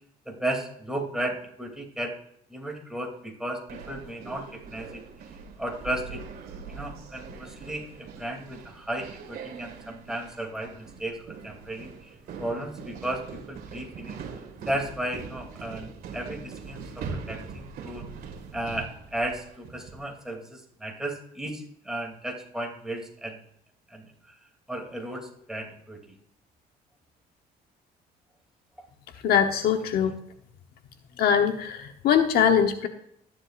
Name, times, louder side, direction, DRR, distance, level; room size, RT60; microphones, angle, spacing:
voice 1, 0.2-2.2 2.5-5.0 5.6-6.2 6.7-14.2 14.7-18.1 18.5-23.4 23.9-24.3 24.7-26.2, right 1 dB, 5° right, 1 dB, 2.9 m, -34 dB
sound 1, 3.7-20.2, right 5 dB, 60° right, 2.1 m, -42 dB
voice 2, 29.2-30.1 31.2-32.9, left 8 dB, 70° left, 6 dB, 1.1 m, -22 dB
13.5 x 11.0 x 2.5 m, 0.69 s
cardioid pair, 110°, 17 cm